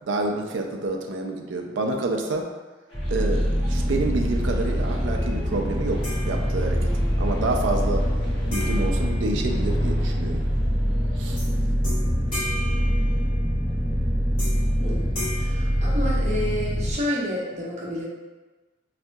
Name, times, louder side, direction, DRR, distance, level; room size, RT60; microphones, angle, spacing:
voice 1, 0.1-2.5 3.1-8.0 8.5-10.4 11.2-11.4, right 2 dB, 70° right, 3 dB, 0.4 m, -28 dB
sound 1, 2.9-11.7, equal, 70° left, 1.3 m, -45 dB
sound 2, 2.9-16.9, equal, 5° left, 0.5 m, -24 dB
sound 3, 6.0-7.0 8.5-10.1 11.4-11.5 11.8-13.7 14.4-14.8 15.1-16.6, left 1 dB, 45° left, 1.4 m, -37 dB
voice 2, 15.3-18.1, left 1 dB, 40° right, -4 dB, 0.7 m, -29 dB
4.0 x 2.7 x 2.2 m, 1.2 s
head